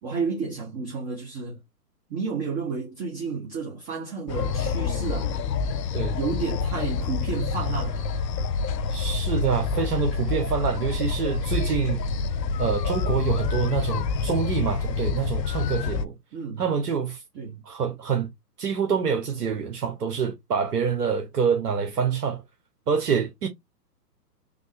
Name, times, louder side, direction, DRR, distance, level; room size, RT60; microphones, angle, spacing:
voice 1, 0.0-1.6 2.1-5.3 6.1-8.1 16.3-16.6 17.3-17.6, right 5 dB, 20° right, 0.9 m, -31 dB
sound 1, 4.3-16.0, left 5 dB, 85° left, 0.5 m, -27 dB
voice 2, 8.9-12.0 12.6-16.1 16.6-17.2 17.7-18.3 18.6-22.4 22.9-23.5, right 6 dB, 70° right, 1.0 m, -26 dB
3.4 x 2.3 x 3.4 m
hypercardioid pair, 130°, 49 cm